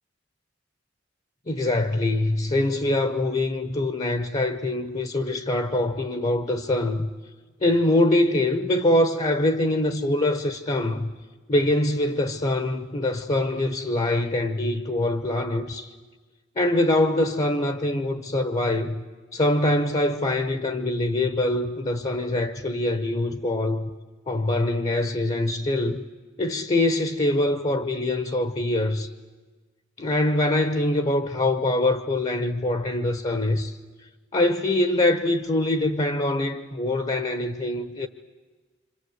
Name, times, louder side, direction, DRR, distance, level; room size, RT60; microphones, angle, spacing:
voice 1, 1.5-7.1 7.6-11.1 11.5-15.9 16.6-19.0 19.3-23.9 24.3-26.0 26.4-29.1 30.0-33.7 34.3-38.1, left 1 dB, 35° left, 1.1 m, -24 dB
27.0 x 26.5 x 8.0 m
head